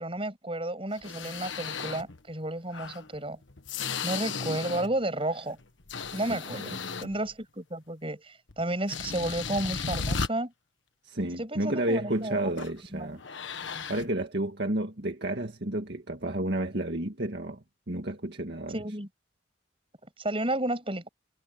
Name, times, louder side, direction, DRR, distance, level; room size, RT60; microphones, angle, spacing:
voice 1, 0.0-3.4 4.0-5.6 6.1-6.8 7.0-10.5 11.4-12.5 12.9-13.2 18.7-19.1 20.2-21.1, right 1 dB, 30° right, 7.8 m, -32 dB
sound 1, 0.9-2.2 2.7-5.0 5.4-7.3 8.5-8.6 8.9-10.3 12.6-12.8 13.2-14.1, left 5 dB, 75° left, 1.4 m, -35 dB
voice 2, 6.3-6.8 11.0-13.2 13.9-18.8, right 1 dB, 60° right, 2.0 m, -31 dB
head